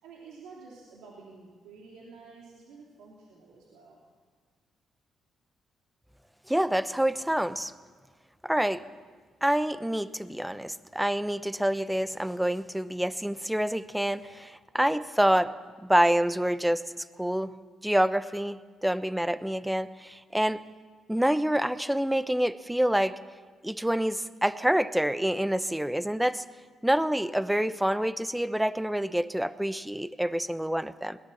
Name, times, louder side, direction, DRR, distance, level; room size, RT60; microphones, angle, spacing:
voice 1, 0.0-4.0, right 4 dB, 85° right, -3 dB, 3.1 m, -50 dB
voice 2, 6.5-7.7 8.4-8.8 9.4-15.5 15.8-17.6 17.8-20.6 21.1-23.2 23.6-26.4 26.8-31.2, right 1 dB, 5° right, 15 dB, 0.9 m, -27 dB
21.0 x 18.0 x 7.2 m, 1.5 s
supercardioid pair, 60°, 0 cm